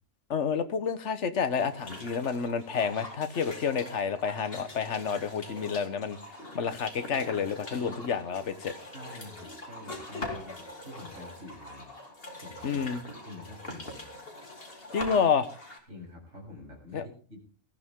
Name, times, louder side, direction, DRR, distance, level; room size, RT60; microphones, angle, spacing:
voice 1, 0.3-6.2 6.5-8.7 12.6-13.0 14.9-15.5 16.9-17.1, left 6 dB, 65° left, 11 dB, 1.5 m, -29 dB
sound 1, 1.5-15.8, left 2 dB, 45° left, 3.1 m, -43 dB
voice 2, 8.9-11.9 12.3-14.1 15.9-17.4, left 1 dB, 60° right, -2 dB, 7.8 m, -47 dB
18.5 x 14.5 x 3.8 m, 0.39 s
omnidirectional pair, 1.3 m